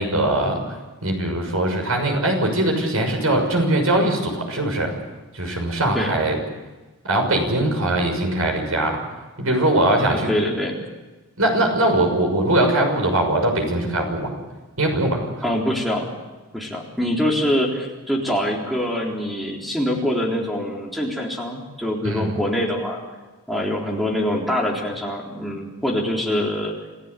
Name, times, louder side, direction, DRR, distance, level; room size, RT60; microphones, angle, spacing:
voice 1, 0.0-4.9 5.3-6.4 7.0-9.0 9.4-10.3 11.4-14.3 14.8-15.3 22.0-22.3, right 1 dB, 75° right, 3 dB, 6.4 m, -21 dB
voice 2, 10.1-10.8 15.4-16.1 16.5-23.0 23.5-26.7, equal, ahead, -3 dB, 3.8 m, -24 dB
27.5 x 15.5 x 8.5 m, 1.2 s
head